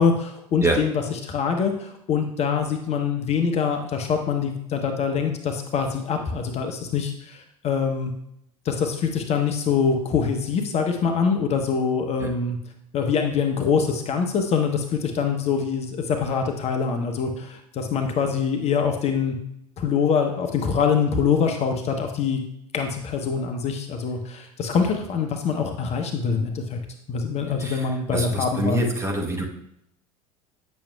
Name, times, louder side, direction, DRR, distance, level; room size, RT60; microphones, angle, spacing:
voice 1, 0.0-8.1 8.6-12.6 12.9-19.4 19.8-22.4 22.7-26.8 27.1-28.9, left 6 dB, 35° left, 4 dB, 0.7 m, -24 dB
voice 2, 27.6-29.5, right 1 dB, 15° right, 1 dB, 0.9 m, -26 dB
8.7 x 6.2 x 2.2 m, 0.76 s
figure-of-eight pair, 75°, 20 cm